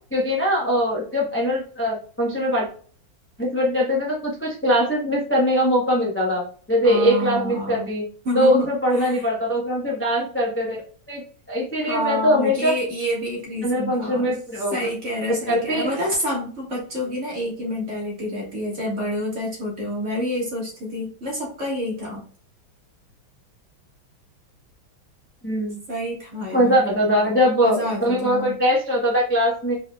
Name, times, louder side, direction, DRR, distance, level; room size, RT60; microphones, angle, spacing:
voice 1, 0.1-2.7 3.4-6.4 6.7-8.0 8.3-10.8 11.1-11.2 11.5-12.7 13.6-14.8 15.5-15.9 25.4-25.8 26.5-29.7, equal, 15° left, -3 dB, 0.5 m, -21 dB
voice 2, 6.8-7.9 8.2-9.3 11.9-22.2 25.9-28.6, equal, 40° right, -3 dB, 1.8 m, -28 dB
5.0 x 4.5 x 2.3 m, 0.43 s
omnidirectional pair, 2.2 m